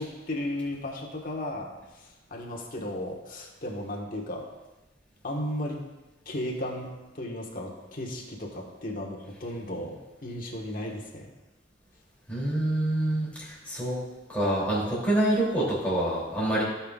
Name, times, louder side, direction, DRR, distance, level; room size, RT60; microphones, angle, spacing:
voice 1, 0.0-4.5 5.2-5.8 6.2-6.9 7.1-9.9 10.2-11.3, left 1 dB, 50° left, -1 dB, 1.5 m, -35 dB
voice 2, 12.3-14.0 14.3-16.6, right 1 dB, 10° left, -7 dB, 3.0 m, -26 dB
16.5 x 5.8 x 2.5 m, 1.1 s
head